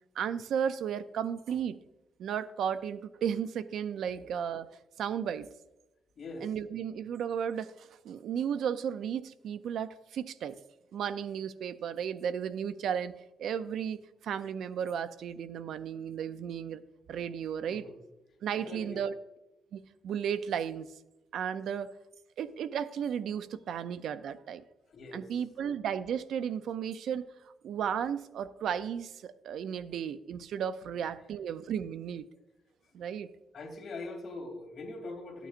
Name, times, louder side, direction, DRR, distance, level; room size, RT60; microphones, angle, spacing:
voice 1, 0.2-1.8 2.2-4.7 5.0-5.5 6.4-10.6 10.9-13.1 13.4-14.0 14.2-16.8 17.1-17.9 18.4-19.1 19.7-20.9 21.3-21.9 22.4-24.6 25.1-27.3 27.6-32.3 32.9-33.3, right 8 dB, 70° right, 13 dB, 0.4 m, -34 dB
voice 2, 6.2-6.5 17.7-17.9 18.5-19.0 24.9-25.3 33.5-35.5, left 2 dB, 45° left, 2 dB, 2.6 m, -42 dB
13.5 x 9.1 x 2.5 m, 0.98 s
cardioid pair, 145°, 0 cm